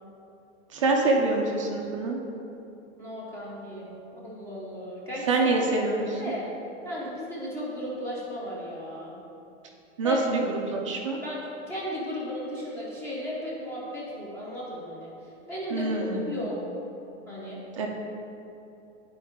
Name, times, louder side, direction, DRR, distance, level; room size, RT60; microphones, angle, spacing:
voice 1, 0.7-2.2 5.3-6.2 10.0-10.4 10.7-11.2 15.7-16.4 17.8-17.9, right 3 dB, 25° right, 0 dB, 0.4 m, -25 dB
voice 2, 3.0-3.9 4.1-5.5 5.8-5.9 6.2-6.5 6.8-9.1 10.0-10.2 11.2-11.4 11.7-15.1 15.5-16.0 16.2-16.6 17.3-17.6, equal, 5° left, -6 dB, 0.8 m, -35 dB
10.0 x 4.6 x 3.6 m, 2.8 s
supercardioid pair, 175°, 37 cm